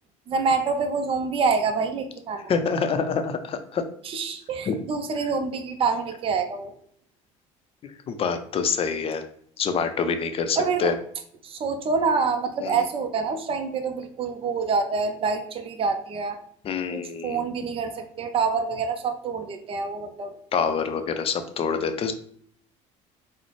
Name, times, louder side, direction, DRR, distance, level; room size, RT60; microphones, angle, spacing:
voice 1, 0.3-2.5 4.0-6.7 10.6-10.9 11.4-16.4 16.9-20.3, right 5 dB, 35° right, 6 dB, 0.5 m, -26 dB
voice 2, 2.5-3.8 4.7-4.8 8.1-9.2 9.6-10.9 12.6-12.8 16.6-17.4 20.5-22.1, left 6 dB, 40° left, 8 dB, 0.5 m, -26 dB
3.8 x 2.1 x 3.1 m, 0.62 s
supercardioid pair, 90°, 16 cm